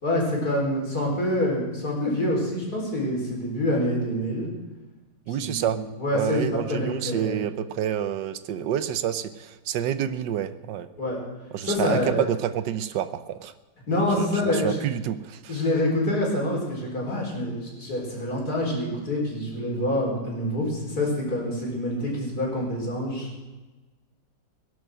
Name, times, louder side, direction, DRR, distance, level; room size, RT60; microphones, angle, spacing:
voice 1, 0.0-4.5 5.3-7.4 11.0-11.2 11.6-12.3 13.9-14.8 15.5-23.3, left 1 dB, 55° left, -2 dB, 5.0 m, -26 dB
voice 2, 5.3-5.8 6.1-10.9 11.5-13.5 14.2-15.6, right 10 dB, 75° right, 13 dB, 1.4 m, -28 dB
18.5 x 11.0 x 6.3 m, 1.2 s
omnidirectional pair, 1.9 m